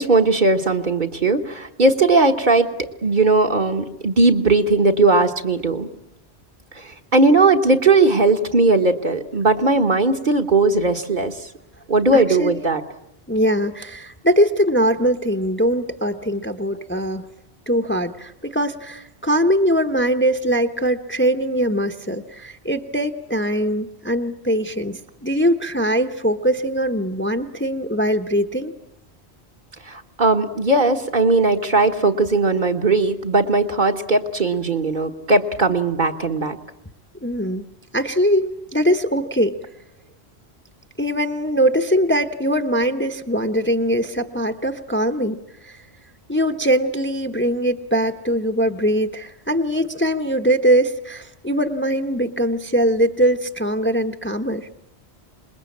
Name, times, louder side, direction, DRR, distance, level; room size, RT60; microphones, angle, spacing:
voice 1, 0.0-2.7 3.0-5.9 6.7-11.3 11.9-12.8 29.9-36.6, right 3 dB, 45° right, 5 dB, 1.5 m, -18 dB
voice 2, 12.1-12.6 13.3-17.3 17.7-28.7 37.2-37.7 37.9-39.6 41.0-45.4 45.6-45.8 46.3-54.7, equal, 10° left, 7 dB, 0.9 m, -21 dB
27.0 x 21.0 x 8.5 m, 0.85 s
omnidirectional pair, 1.1 m